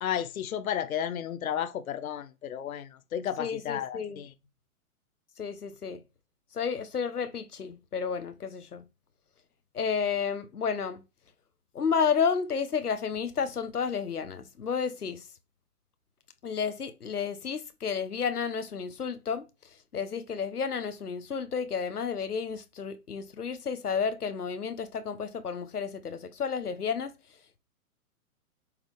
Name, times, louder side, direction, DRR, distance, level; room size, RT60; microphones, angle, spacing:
voice 1, 0.0-4.3, left 9 dB, 70° left, 0.9 m, -33 dB
voice 2, 3.4-4.2 5.4-6.0 6.5-8.8 9.7-11.0 11.7-15.2 16.4-19.4 19.9-27.1, left 6 dB, 90° left, 1.1 m, -31 dB
7.8 x 3.7 x 3.6 m
hypercardioid pair, 120°, 44 cm